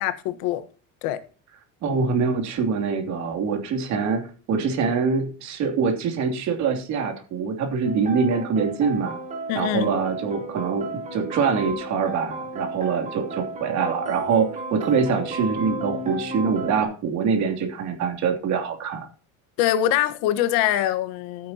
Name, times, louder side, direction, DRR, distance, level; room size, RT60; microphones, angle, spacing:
voice 1, 0.0-0.6 1.0-1.2 9.5-9.9 19.6-21.5, left 12 dB, 80° left, 1.4 m, -23 dB
voice 2, 1.8-9.2 9.5-19.1, right 5 dB, 50° right, 2.9 m, -24 dB
sound 1, 7.8-16.8, right 2 dB, 20° right, 3.3 m, -34 dB
13.5 x 10.0 x 2.9 m
cardioid pair, 165°, 35 cm